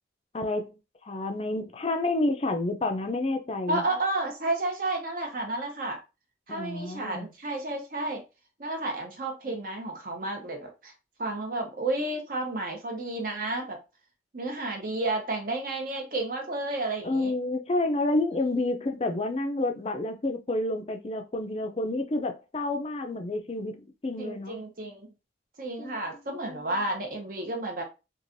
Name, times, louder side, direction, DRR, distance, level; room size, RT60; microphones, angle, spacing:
voice 1, 0.3-0.8 1.1-3.8 6.5-7.3 17.0-24.6 25.8-26.0 26.4-26.7, left 2 dB, 30° left, 0.4 m, -29 dB
voice 2, 3.7-6.0 6.5-8.2 8.6-10.9 11.2-13.8 14.3-17.3 18.3-18.8 24.2-25.1 25.6-27.8, right 2 dB, 45° right, 0.8 m, -31 dB
3.1 x 2.4 x 2.6 m
head